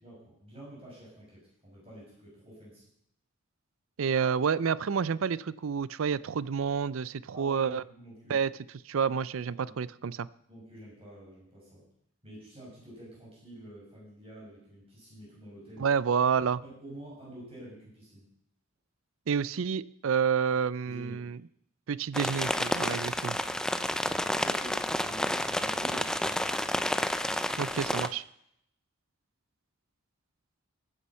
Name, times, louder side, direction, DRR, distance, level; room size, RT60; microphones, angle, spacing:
voice 1, 0.0-2.9 7.3-8.4 9.3-9.7 10.5-11.9 12.2-15.9 16.6-18.3 20.8-21.3 24.4-26.6, right 1 dB, 30° right, -6 dB, 6.1 m, -48 dB
voice 2, 4.0-7.8 8.3-8.5 8.9-10.3 15.8-16.6 19.3-21.4 21.9-23.4 27.6-28.2, right 6 dB, 80° right, 20 dB, 0.5 m, -29 dB
sound 1, 22.1-28.1, left 1 dB, 5° left, 0.5 m, -30 dB
14.5 x 9.9 x 5.5 m, 0.73 s
head